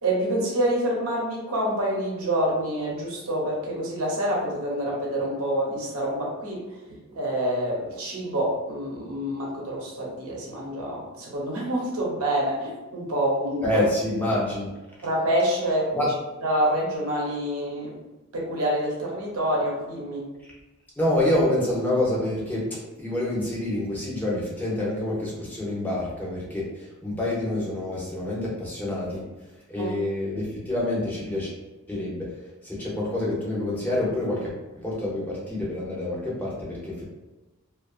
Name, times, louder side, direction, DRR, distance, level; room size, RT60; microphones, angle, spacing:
voice 1, 0.0-6.6 7.1-13.6 15.0-16.1 16.4-18.0 18.3-20.3 29.8-29.9, right 1 dB, 75° right, -3 dB, 0.8 m, -27 dB
voice 2, 13.6-14.7 15.9-16.1 21.0-29.2 29.7-31.5 31.9-32.3 32.6-34.5 34.8-37.0, left 1 dB, 10° left, -6 dB, 0.7 m, -27 dB
2.5 x 2.4 x 2.4 m, 1.1 s
head